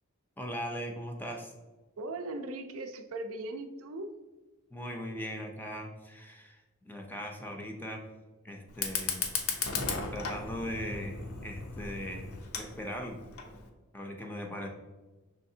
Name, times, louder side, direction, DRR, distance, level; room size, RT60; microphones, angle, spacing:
voice 1, 0.4-1.5 4.7-8.1 8.4-9.2 9.4-12.3 12.5-13.2 13.9-14.7, equal, 10° left, 2 dB, 0.5 m, -39 dB
voice 2, 2.0-4.1, right 2 dB, 75° right, 6 dB, 0.4 m, -38 dB
Fire, 8.7-13.7, left 5 dB, 85° left, 0.7 m, -36 dB
5.7 x 3.4 x 2.7 m, 1.2 s
head